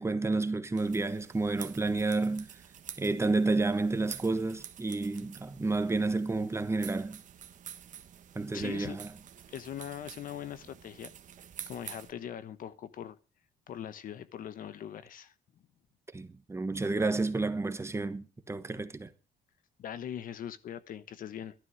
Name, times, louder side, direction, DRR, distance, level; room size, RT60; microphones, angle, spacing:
voice 1, 0.0-2.5 3.0-7.2 8.3-9.1 16.1-19.1, right 3 dB, 15° right, 1.1 m, -30 dB
sound 1, 0.8-12.1, right 9 dB, 50° right, 1.3 m, -48 dB
voice 2, 8.5-9.0 9.5-11.1 11.7-13.2 13.7-15.3 19.8-21.5, left 10 dB, 55° left, 1.0 m, -41 dB
12.5 x 11.5 x 6.4 m
cardioid pair, 110°, 17 cm